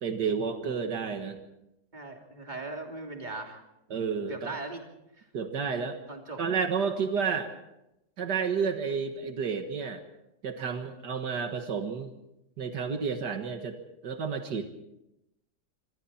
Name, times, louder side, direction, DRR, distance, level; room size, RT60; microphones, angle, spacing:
voice 1, 0.0-1.4 3.9-4.5 5.3-6.0 6.4-7.5 8.2-10.0 10.4-12.1 12.6-13.8 14.0-14.6, right 6 dB, 75° right, 6 dB, 2.1 m, -31 dB
voice 2, 1.9-3.6 4.3-4.8 6.1-6.4, right 3 dB, 25° right, 2 dB, 3.2 m, -38 dB
25.5 x 25.0 x 4.3 m, 0.88 s
omnidirectional pair, 1.8 m